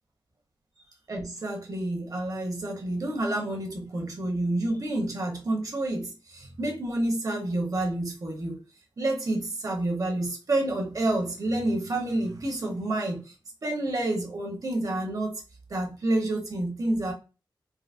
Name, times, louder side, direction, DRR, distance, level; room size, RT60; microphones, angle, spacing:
voice 1, 1.1-8.6 9.0-13.3 13.6-15.4 15.7-17.1, right 1 dB, 45° right, 2 dB, 1.0 m, -29 dB
4.7 x 2.0 x 2.5 m, 0.33 s
wide cardioid pair, 130°, 9 cm